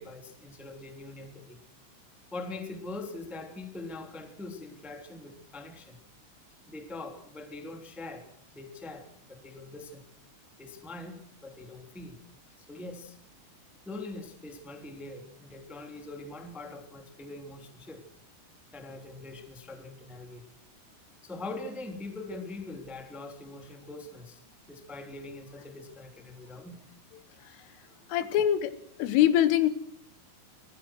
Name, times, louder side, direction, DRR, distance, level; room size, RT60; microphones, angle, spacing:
voice 1, 0.0-1.6 2.3-6.0 6.7-10.0 10.6-12.2 12.6-13.2 13.8-18.0 18.7-20.4 21.2-24.4 24.7-26.8 27.9-28.0, left 2 dB, ahead, 5 dB, 1.8 m, -43 dB
voice 2, 28.1-29.7, left 11 dB, 80° left, 13 dB, 3.9 m, -24 dB
28.0 x 21.0 x 6.3 m, 0.63 s
omnidirectional pair, 5.8 m